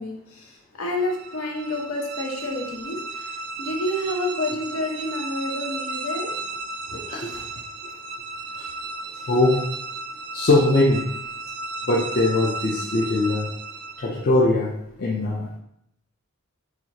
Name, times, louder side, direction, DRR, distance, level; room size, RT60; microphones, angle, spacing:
voice 1, 0.0-6.3, left 1 dB, 80° left, 1 dB, 0.7 m, -29 dB
sound 1, 0.9-14.3, right 3 dB, 55° right, 0.4 m, -34 dB
voice 2, 6.9-7.4 8.6-8.7 9.3-9.6 10.3-11.1 11.9-13.5 14.0-14.7 15.0-15.5, left 2 dB, 45° left, -1 dB, 0.4 m, -21 dB
4.3 x 2.4 x 2.8 m, 0.75 s
head